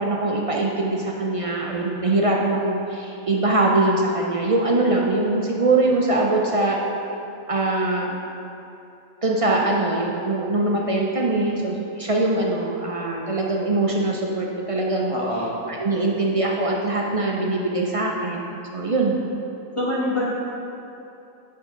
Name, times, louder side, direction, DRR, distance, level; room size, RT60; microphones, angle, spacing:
voice 1, 0.0-6.8 7.5-8.2 9.2-15.1 15.7-19.2, right 2 dB, 55° right, -1 dB, 0.3 m, -22 dB
voice 2, 15.1-15.5 19.7-20.3, left 1 dB, 25° left, -6 dB, 1.4 m, -25 dB
8.2 x 6.9 x 3.8 m, 2.9 s
omnidirectional pair, 1.4 m